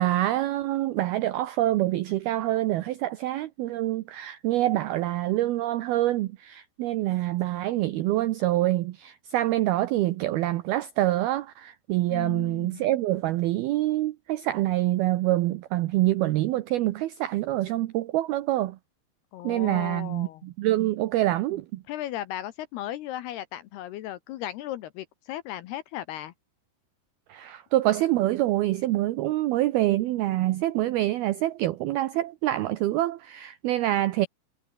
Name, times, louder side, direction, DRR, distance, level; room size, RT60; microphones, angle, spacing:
voice 1, 0.0-18.8 19.4-21.8 27.3-34.3, right 15 dB, 85° right, 2.2 m, -26 dB
voice 2, 12.1-12.8 19.3-20.5 21.9-26.3, left 13 dB, 75° left, 2.6 m, -36 dB
omnidirectional pair, 5.5 m